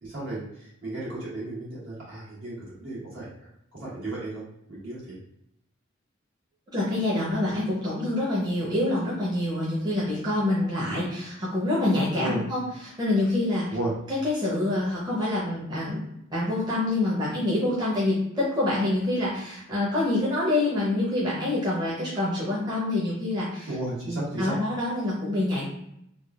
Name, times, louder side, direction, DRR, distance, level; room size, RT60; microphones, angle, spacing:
voice 1, 0.0-4.4 4.7-5.2 12.1-12.4 13.7-14.0 23.7-24.5, right 2 dB, 65° right, -8 dB, 1.5 m, -34 dB
voice 2, 6.7-13.7 14.1-16.0 16.3-23.7 24.1-25.6, left 1 dB, 20° right, -8 dB, 0.7 m, -26 dB
3.5 x 2.3 x 2.4 m, 0.78 s
head